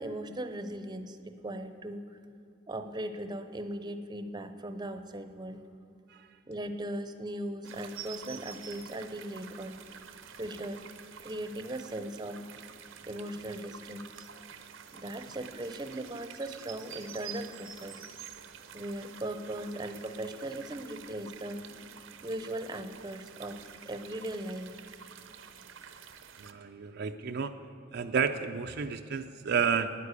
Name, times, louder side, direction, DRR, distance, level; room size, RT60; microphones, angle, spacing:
voice 1, 0.0-2.2 2.7-5.6 6.5-9.8 10.4-10.8 11.2-12.4 13.1-14.3 14.9-18.1 18.7-21.6 22.2-23.6 23.9-24.8, right 1 dB, 20° right, 9 dB, 0.7 m, -38 dB
sound 1, 7.6-26.5, right 7 dB, 75° right, 0.8 m, -48 dB
voice 2, 26.4-27.6 27.9-29.9, right 6 dB, 55° right, 6 dB, 0.5 m, -31 dB
9.9 x 9.8 x 8.2 m, 2.7 s
head